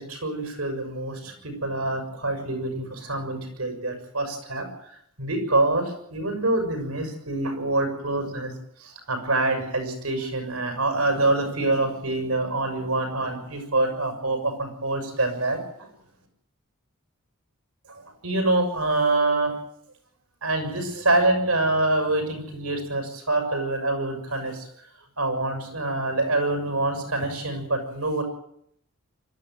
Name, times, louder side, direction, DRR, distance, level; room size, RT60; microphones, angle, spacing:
voice 1, 0.0-4.7 5.2-8.5 8.8-15.9 17.9-19.5 20.4-24.7 25.2-28.2, right 2 dB, 75° right, 5 dB, 6.6 m, -26 dB
25.5 x 13.0 x 9.2 m, 0.72 s
head